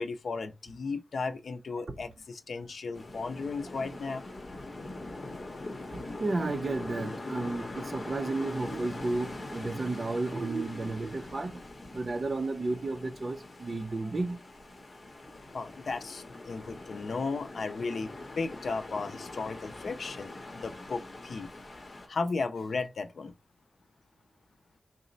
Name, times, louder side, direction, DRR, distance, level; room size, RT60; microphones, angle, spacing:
voice 1, 0.0-4.2 15.5-18.1 18.4-21.5 22.1-23.3, left 4 dB, 70° left, 0.4 m, -35 dB
sound 1, 2.9-22.1, left 2 dB, 40° left, 0.8 m, -43 dB
voice 2, 5.9-11.6 11.9-14.4, right 3 dB, 40° right, 0.5 m, -33 dB
3.9 x 2.0 x 3.9 m
wide cardioid pair, 130°, 0 cm